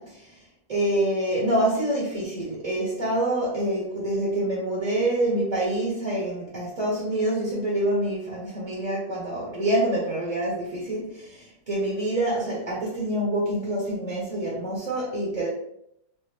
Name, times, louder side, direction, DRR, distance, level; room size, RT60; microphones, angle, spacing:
voice 1, 0.0-15.5, right 1 dB, 30° right, -6 dB, 0.9 m, -26 dB
3.3 x 2.5 x 3.3 m, 0.76 s
omnidirectional pair, 1.7 m